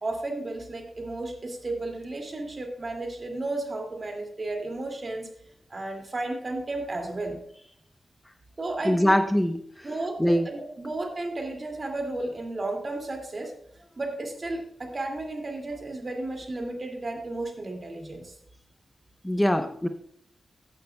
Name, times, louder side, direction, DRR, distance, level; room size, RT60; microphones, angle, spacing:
voice 1, 0.0-5.3 5.7-7.4 8.6-9.2 9.8-13.5 14.0-18.3, right 2 dB, 50° right, 2 dB, 2.4 m, -33 dB
voice 2, 8.8-9.9 10.2-10.5 19.2-19.9, equal, 10° left, 7 dB, 0.8 m, -23 dB
14.5 x 8.9 x 2.3 m, 0.66 s
cardioid pair, 45°, 0 cm